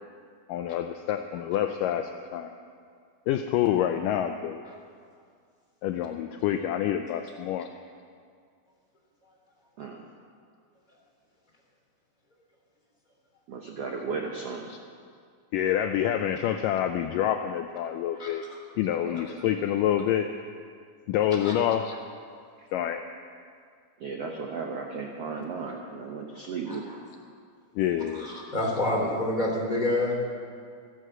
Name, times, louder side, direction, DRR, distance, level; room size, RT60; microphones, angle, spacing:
voice 1, 0.5-2.5 3.3-4.6 5.8-7.7 14.7-14.8 15.5-18.4 18.8-20.3 21.1-21.9 22.7-23.0 27.8-28.3, left 10 dB, 80° left, 7 dB, 1.9 m, -27 dB
voice 2, 9.8-10.1 13.5-14.7 19.0-19.3 22.6-22.7 24.0-26.9, right 4 dB, 85° right, 1 dB, 1.3 m, -35 dB
voice 3, 28.1-30.1, left 1 dB, 15° left, -3 dB, 2.4 m, -27 dB
13.5 x 11.0 x 7.8 m, 2.2 s
omnidirectional pair, 4.3 m